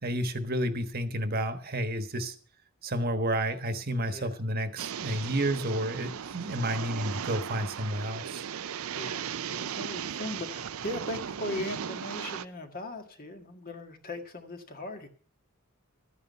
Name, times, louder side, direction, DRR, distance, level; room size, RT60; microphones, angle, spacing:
voice 1, 0.0-2.3 2.8-8.4, right 1 dB, 45° right, 8 dB, 1.3 m, -31 dB
voice 2, 4.1-4.4 8.9-15.1, left 1 dB, 45° left, 4 dB, 1.8 m, -39 dB
sound 1, 4.8-12.4, right 8 dB, 80° right, 0.5 m, -37 dB
13.0 x 9.6 x 5.6 m, 0.43 s
head